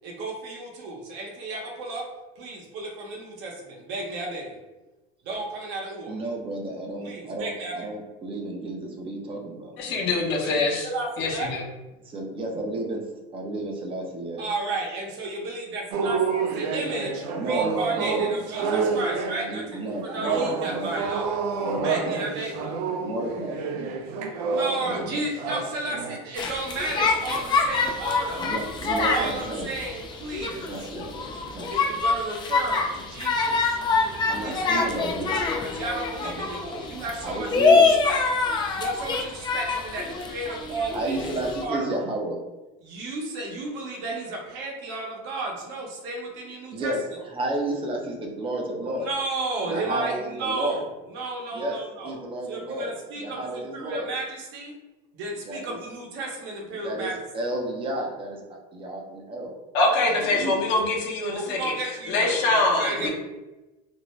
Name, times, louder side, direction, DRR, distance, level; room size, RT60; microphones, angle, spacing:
voice 1, 0.0-4.6 5.2-6.2 7.0-7.9 10.4-11.5 14.4-21.4 21.8-22.8 24.4-28.5 28.8-30.9 31.7-33.8 34.4-38.2 38.7-41.9 42.8-47.0 48.8-50.8 51.1-52.2 52.5-54.7 55.1-57.2 61.3-63.1, right 2 dB, 60° right, -1 dB, 0.8 m, -33 dB
voice 2, 6.1-10.1 12.1-13.0 13.3-14.4 17.3-18.2 18.6-19.0 19.5-21.0 21.6-22.3 23.0-23.6 24.8-25.3 28.4-29.7 30.5-31.9 34.3-35.5 36.2-36.4 37.2-37.9 40.9-42.4 46.7-47.0 47.3-49.1 49.6-50.8 51.5-51.8 52.0-52.9 53.2-54.1 55.5-55.8 56.8-59.6 60.0-60.6 63.0-63.1, right 1 dB, 25° right, 1 dB, 0.5 m, -32 dB
voice 3, 9.8-10.9 11.2-11.6 59.7-61.7 62.1-63.1, left 2 dB, 60° left, -1 dB, 0.8 m, -24 dB
sound 1, 15.9-26.3 26.8-27.0 27.6-28.0 28.3-28.6, right 5 dB, 85° right, 0.4 m, -29 dB
sound 2, 26.4-41.6, left 4 dB, 20° left, 0.4 m, -25 dB
2.5 x 2.1 x 3.0 m, 1.1 s
supercardioid pair, 125°, 20 cm